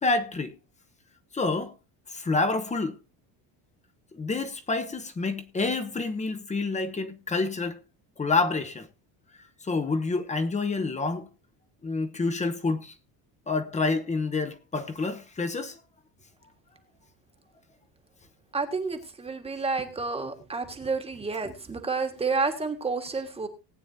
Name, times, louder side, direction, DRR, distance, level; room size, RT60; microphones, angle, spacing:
voice 1, 0.0-0.5 1.3-1.7 2.1-3.0 4.2-7.8 8.2-8.9 9.7-11.3 11.8-12.9 13.5-15.8, left 3 dB, 15° left, 0.9 m, -28 dB
voice 2, 18.5-23.5, right 4 dB, 15° right, 1.6 m, -30 dB
19.0 x 9.0 x 2.7 m
cardioid pair, 150°, 40 cm